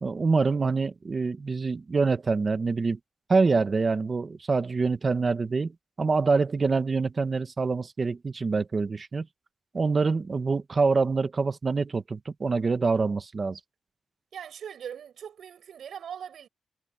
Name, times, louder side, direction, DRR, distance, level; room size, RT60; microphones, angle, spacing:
voice 1, 0.0-3.0 3.3-5.7 6.0-9.3 9.7-13.6, right 4 dB, 30° right, 1.1 m, -25 dB
voice 2, 14.3-16.5, right 8 dB, 80° right, 7.5 m, -40 dB
wide cardioid pair, 170°, 0 cm